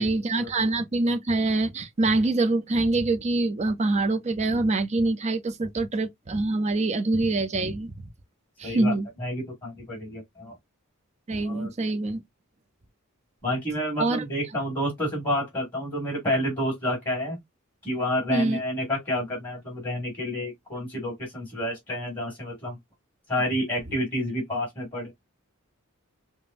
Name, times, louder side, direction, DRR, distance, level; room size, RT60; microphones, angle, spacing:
voice 1, 0.0-8.1 8.6-9.1 11.3-12.2 14.0-14.2 18.3-18.6, right 2 dB, 30° right, 0.5 m, -25 dB
voice 2, 8.6-8.9 9.2-10.5 11.4-11.7 13.4-17.4 17.8-22.8 23.3-25.1, equal, 20° left, 2.1 m, -29 dB
5.1 x 2.1 x 2.6 m
head